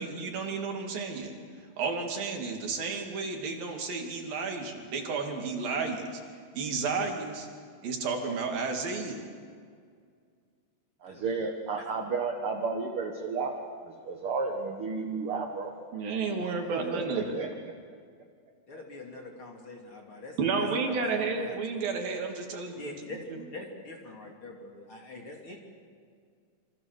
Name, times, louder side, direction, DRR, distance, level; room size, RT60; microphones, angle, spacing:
voice 1, 0.0-1.3 1.8-6.1 6.5-7.5 7.8-9.2 15.9-17.4 20.4-23.0, right 4 dB, 70° right, 2 dB, 4.4 m, -32 dB
voice 2, 11.0-15.7 16.7-17.5, right 4 dB, 50° right, 3 dB, 1.8 m, -32 dB
voice 3, 16.6-17.0 18.7-21.9 22.8-23.2 23.5-25.6, left 2 dB, 35° left, 1 dB, 3.4 m, -45 dB
27.0 x 26.5 x 6.8 m, 2.1 s
omnidirectional pair, 4.3 m